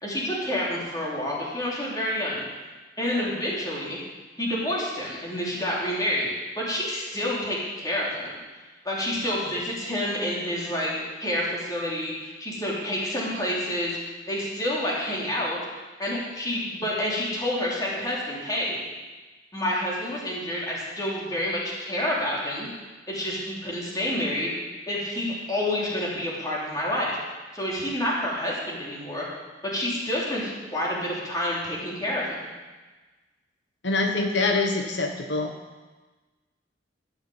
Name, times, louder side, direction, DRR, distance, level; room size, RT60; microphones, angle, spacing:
voice 1, 0.0-2.4 3.0-4.0 4.4-6.3 6.6-8.4 8.8-10.9 11.2-14.0 14.3-15.6 16.0-18.8 19.5-22.7 23.1-24.5 24.9-27.2 27.5-29.2 29.6-32.2, left 1 dB, 20° left, -5 dB, 3.5 m, -28 dB
voice 2, 33.8-35.5, left 3 dB, 80° left, 3 dB, 1.3 m, -25 dB
15.0 x 6.7 x 8.0 m, 1.3 s
head